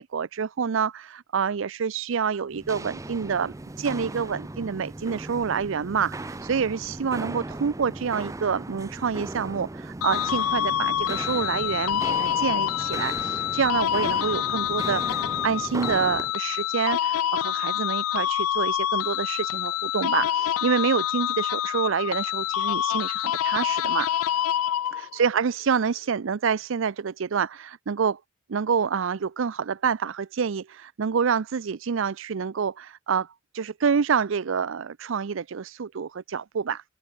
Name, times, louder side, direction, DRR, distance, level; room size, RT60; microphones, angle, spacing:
voice 1, 0.0-24.1 24.9-28.2 28.5-33.3 33.5-36.8, right 6 dB, 65° right, 0.5 m, -27 dB
Walk footsteps, 2.5-16.3, right 2 dB, 15° right, 0.5 m, -37 dB
sound 1, 10.0-25.2, left 11 dB, 85° left, 0.3 m, -27 dB
open air
head